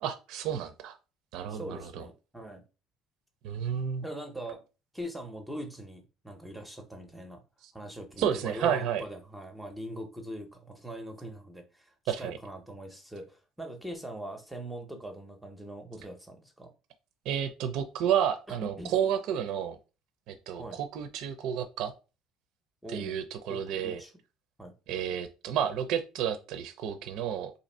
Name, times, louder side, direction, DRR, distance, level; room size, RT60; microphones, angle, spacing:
voice 1, 0.0-1.0 1.3-2.0 3.4-4.0 8.2-9.0 12.1-12.4 17.3-19.8 20.3-21.9 22.9-24.0 24.9-27.5, right 9 dB, 65° right, 9 dB, 0.4 m, -31 dB
voice 2, 1.5-2.6 4.0-4.6 4.9-7.4 7.7-16.7 18.5-18.9 20.6-20.8 22.8-23.1 23.5-24.1 24.6-24.7, right 1 dB, 5° right, 4 dB, 0.6 m, -42 dB
2.7 x 2.5 x 4.2 m, 0.31 s
cardioid pair, 160°, 0 cm